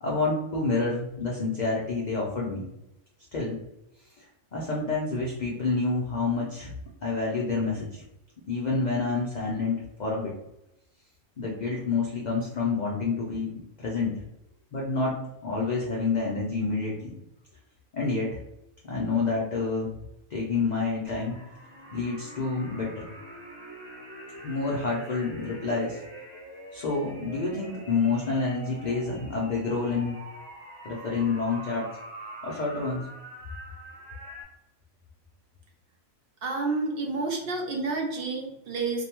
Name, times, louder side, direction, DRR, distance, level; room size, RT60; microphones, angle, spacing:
voice 1, 0.0-2.7 3.3-3.6 4.2-4.3 4.5-6.7 7.0-8.0 8.5-10.4 11.4-14.2 14.7-17.1 17.9-18.3 18.8-19.9 20.3-21.4 21.9-23.1 24.4-26.0 26.7-30.2 30.8-31.9 32.4-33.1, left 3 dB, 75° left, -4 dB, 0.4 m, -28 dB
sound 1, 21.0-34.4, right 1 dB, 20° right, 0.8 m, -44 dB
voice 2, 36.4-39.0, right 3 dB, 60° right, 1 dB, 0.6 m, -29 dB
2.6 x 2.1 x 2.8 m, 0.86 s
omnidirectional pair, 1.4 m